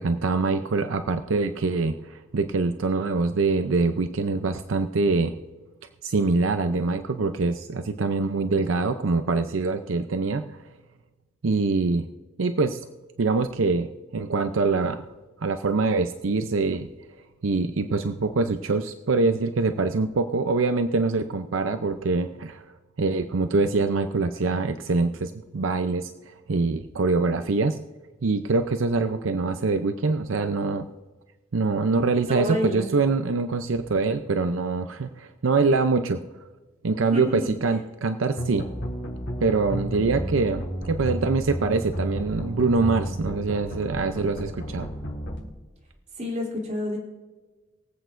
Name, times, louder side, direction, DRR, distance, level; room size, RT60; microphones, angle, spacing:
voice 1, 0.0-5.3 6.0-10.6 11.4-12.1 12.4-12.8 13.2-15.0 15.4-16.9 17.4-22.6 23.0-27.8 28.2-30.9 31.5-36.2 36.8-38.7 39.4-44.9, right 3 dB, 80° right, 8 dB, 0.6 m, -24 dB
voice 2, 32.3-32.9 37.1-37.5 46.2-47.0, left 1 dB, 40° right, -2 dB, 3.2 m, -29 dB
sound 1, 38.4-45.4, equal, 65° left, 3.4 m, -32 dB
23.5 x 8.2 x 2.6 m, 1.2 s
head